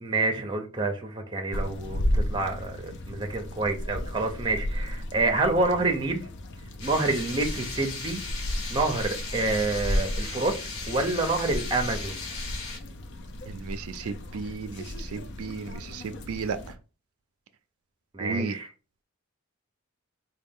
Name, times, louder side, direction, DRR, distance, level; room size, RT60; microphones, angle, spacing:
voice 1, 0.0-6.3 6.8-8.2 8.7-10.5 10.9-12.3 18.1-18.7, right 2 dB, 20° right, 0.6 m, -27 dB
sound 1, 1.5-16.8, equal, 55° left, 0.5 m, -34 dB
sound 2, 6.8-12.8, left 4 dB, 75° left, 1.2 m, -37 dB
voice 2, 13.5-16.6 18.2-18.6, right 4 dB, 75° right, 0.4 m, -34 dB
3.8 x 2.2 x 3.6 m
head